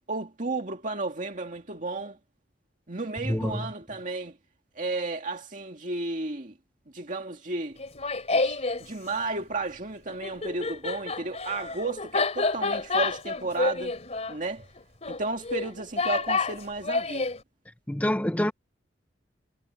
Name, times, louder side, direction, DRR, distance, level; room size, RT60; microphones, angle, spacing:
voice 1, 0.0-2.2 2.9-4.3 4.8-6.5 6.9-7.8 8.3-13.9 14.3-14.7 15.1-17.3, right 3 dB, 45° right, 2.2 m, -33 dB
voice 2, 3.3-3.6 17.9-18.5, left 1 dB, 10° left, 0.7 m, -26 dB
Laughter, 7.8-8.8 10.1-17.4, left 3 dB, 40° left, 3.5 m, -29 dB
head